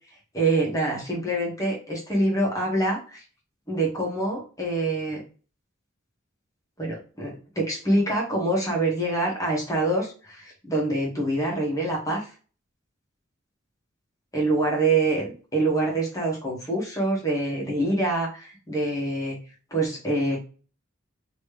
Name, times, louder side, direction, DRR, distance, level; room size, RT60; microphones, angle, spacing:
voice 1, 0.3-3.2 3.7-5.2 6.8-12.3 14.3-19.4 19.7-20.4, right 2 dB, 15° left, -3 dB, 1.4 m, -25 dB
3.1 x 3.0 x 3.3 m, 0.36 s
head